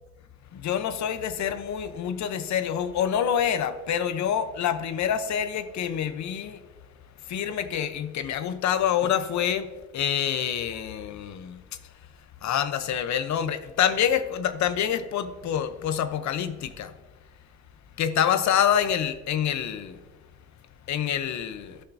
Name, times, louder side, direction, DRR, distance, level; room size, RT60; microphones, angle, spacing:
voice 1, 0.5-6.6 7.3-11.6 12.4-16.9 18.0-20.0 20.9-21.8, left 9 dB, 65° left, 0.8 m, -26 dB
13.5 x 5.8 x 2.6 m
cardioid pair, 90°, 30 cm